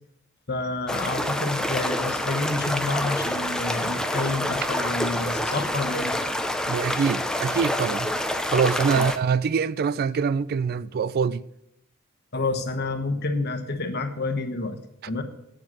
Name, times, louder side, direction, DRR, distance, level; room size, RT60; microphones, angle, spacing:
voice 1, 0.5-6.2 8.9-9.0 12.3-14.8 15.1-15.2, left 2 dB, 50° left, 1.2 m, -29 dB
sound 1, 0.9-9.2, left 1 dB, 5° left, 0.6 m, -27 dB
voice 2, 6.7-8.1 8.5-11.4, right 6 dB, 45° right, 0.3 m, -24 dB
8.9 x 7.5 x 6.3 m
head